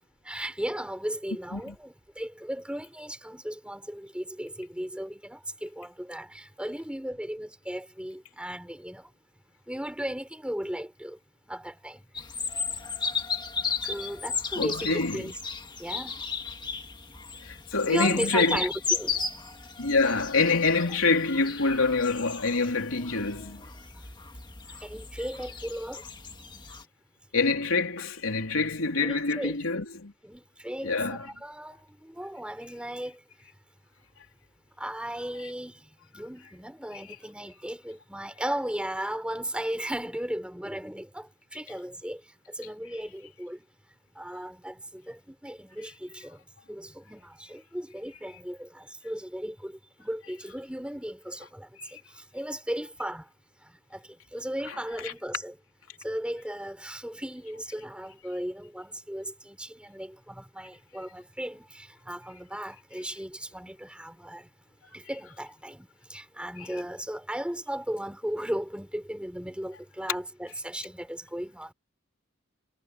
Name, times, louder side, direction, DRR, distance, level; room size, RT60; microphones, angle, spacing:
voice 1, 0.2-9.1 9.7-11.2 11.5-12.0 13.8-15.4 15.8-16.2 17.9-19.2 24.8-26.0 29.0-29.6 30.2-33.2 34.8-42.2 42.5-43.6 44.2-53.3 53.6-55.6 56.0-64.5 64.9-71.7, equal, 5° right, 4.2 m, -36 dB
sound 1, 12.1-26.8, left 5 dB, 20° left, 1.8 m, -35 dB
voice 2, 14.6-15.3 17.4-18.6 19.8-23.6 27.3-30.1 30.8-31.2 51.8-51.9 55.0-55.1 66.6-66.7, left 3 dB, 80° left, 3.4 m, -26 dB
head